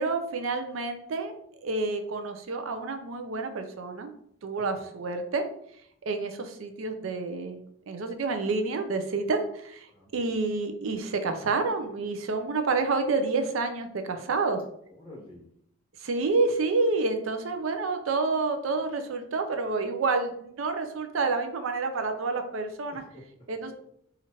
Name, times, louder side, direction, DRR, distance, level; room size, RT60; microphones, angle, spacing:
voice 1, 0.0-1.3 1.6-4.1 4.4-5.4 6.0-9.9 10.1-14.6 16.0-23.0 23.5-23.7, right 3 dB, 75° right, 7 dB, 0.5 m, -29 dB
voice 2, 4.5-4.9 9.9-10.4 14.9-15.5 22.9-23.7, left 1 dB, 25° left, -5 dB, 1.4 m, -50 dB
4.2 x 2.5 x 2.9 m, 0.70 s
head